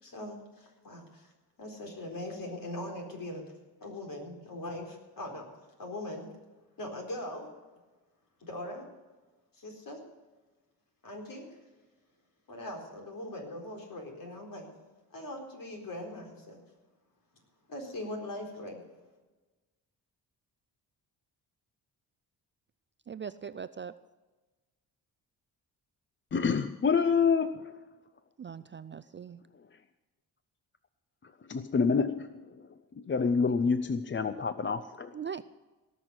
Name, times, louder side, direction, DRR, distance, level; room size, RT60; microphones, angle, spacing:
voice 1, 0.0-1.3 1.6-3.4 3.8-5.4 5.8-6.3 6.8-7.5 8.4-8.8 9.5-10.0 11.0-11.5 12.5-14.7 15.1-16.6 17.7-18.8, left 1 dB, 55° left, 1 dB, 4.3 m, -40 dB
voice 2, 23.1-23.9 28.4-29.4 35.1-35.4, right 7 dB, 30° right, 14 dB, 0.4 m, -40 dB
voice 3, 26.3-27.7 31.2-32.6 33.0-35.1, left 5 dB, 30° left, 11 dB, 0.6 m, -28 dB
18.0 x 6.3 x 8.0 m, 1.2 s
cardioid pair, 90°, 40 cm